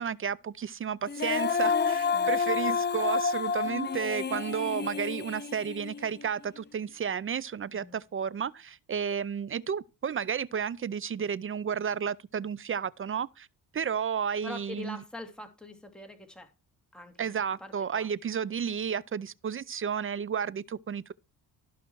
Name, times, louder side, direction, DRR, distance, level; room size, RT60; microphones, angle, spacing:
voice 1, 0.0-13.5 13.7-15.0 17.2-21.1, right 7 dB, 35° right, 0.5 m, -32 dB
Female singing, 1.1-6.3, left 5 dB, 25° left, 0.7 m, -29 dB
voice 2, 14.4-16.5 16.9-17.3 17.6-18.1, left 2 dB, ahead, 2.7 m, -44 dB
14.0 x 5.7 x 4.7 m
cardioid pair, 90°, 40 cm